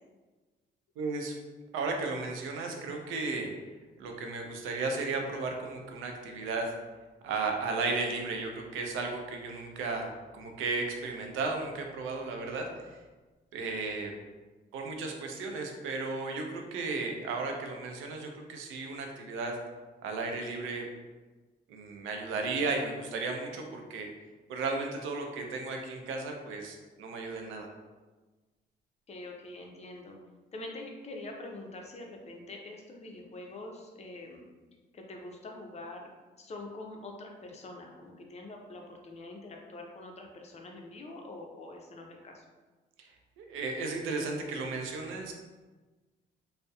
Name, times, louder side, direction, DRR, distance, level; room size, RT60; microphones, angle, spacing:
voice 1, 1.0-1.3 1.7-3.5 4.0-6.7 7.2-13.0 13.5-14.1 14.7-19.6 20.0-20.9 21.7-24.1 24.5-27.7 43.0-43.1 43.4-45.3, right 3 dB, 90° right, 2 dB, 0.4 m, -34 dB
voice 2, 29.1-30.2 30.5-34.5 34.9-36.1 36.4-42.4, left 2 dB, 35° left, 1 dB, 0.4 m, -45 dB
2.6 x 2.0 x 2.3 m, 1.3 s
cardioid pair, 90°, 20 cm